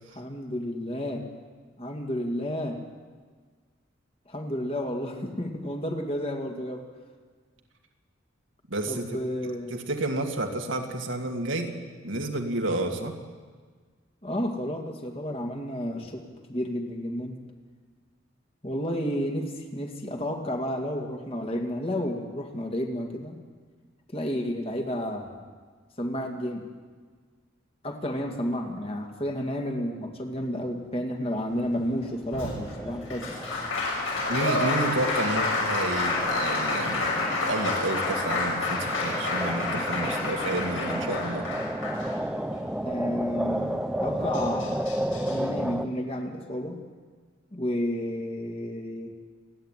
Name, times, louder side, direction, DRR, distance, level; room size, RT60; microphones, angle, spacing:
voice 1, 0.2-1.3 1.8-2.8 4.3-6.9 8.9-9.8 14.2-17.4 18.6-23.4 24.1-25.4 26.0-26.6 27.8-33.3 42.8-44.9 45.3-46.8 47.5-49.1, equal, 30° left, 3 dB, 2.2 m, -31 dB
voice 2, 8.7-11.8 12.0-13.2 34.3-41.5, right 2 dB, 65° right, 3 dB, 2.3 m, -30 dB
sound 1, 31.5-45.8, equal, 5° right, 0.9 m, -33 dB
Applause, 32.3-42.6 44.0-44.1 44.3-45.3, left 3 dB, 70° left, 6.4 m, -29 dB
29.0 x 10.5 x 9.2 m, 1.5 s
head